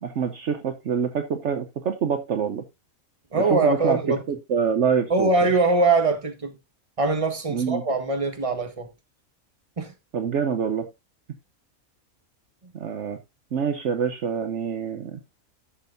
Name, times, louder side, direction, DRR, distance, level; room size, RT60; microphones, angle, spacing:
voice 1, 0.0-2.6 3.3-4.0 4.3-5.3 7.5-7.8 10.1-10.9 12.7-13.2 13.5-15.2, right 7 dB, 60° right, 1.1 m, -26 dB
voice 2, 3.3-4.2 5.1-6.6 7.0-8.9 9.8-9.9, right 3 dB, 25° right, 1.4 m, -22 dB
11.5 x 7.5 x 2.6 m
omnidirectional pair, 1.5 m